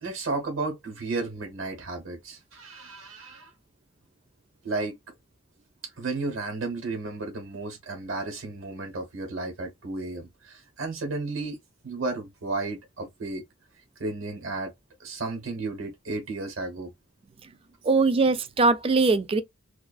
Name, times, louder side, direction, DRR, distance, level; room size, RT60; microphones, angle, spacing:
voice 1, 0.0-3.5 4.6-4.9 6.0-11.6 11.8-13.4 14.0-14.7 15.0-16.9, right 3 dB, 75° right, 1.2 m, -33 dB
voice 2, 17.8-19.4, right 3 dB, 30° right, 0.3 m, -21 dB
2.5 x 2.4 x 2.3 m
head